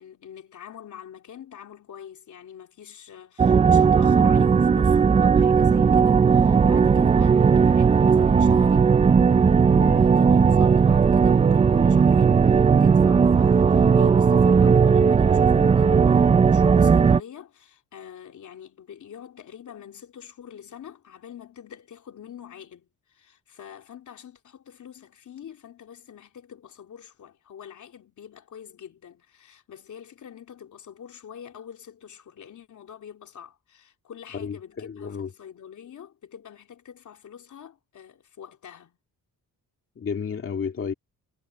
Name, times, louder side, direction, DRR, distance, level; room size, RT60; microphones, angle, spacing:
voice 1, 0.0-8.9 9.9-39.0, left 8 dB, 60° left, 3.5 m, -45 dB
sound 1, 3.4-17.2, right 6 dB, 20° right, 0.3 m, -17 dB
voice 2, 9.7-10.1 34.3-35.3 40.0-40.9, left 6 dB, 40° left, 2.2 m, -32 dB
cardioid pair, 120°, 33 cm